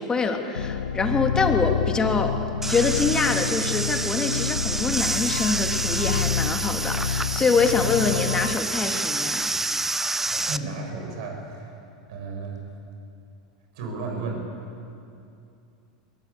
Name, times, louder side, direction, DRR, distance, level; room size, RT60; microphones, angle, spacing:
voice 1, 0.0-2.4 2.7-9.4, left 4 dB, 20° left, 4 dB, 2.8 m, -25 dB
sound 1, 0.5-8.6, left 7 dB, 85° left, 0.9 m, -28 dB
sound 2, 2.6-10.6, right 2 dB, 10° right, 0.8 m, -28 dB
voice 2, 10.3-11.7 12.1-12.7 13.7-14.4, right 3 dB, 60° right, 2 dB, 6.9 m, -33 dB
23.5 x 21.5 x 8.4 m, 2.6 s
figure-of-eight pair, 85°, 4 cm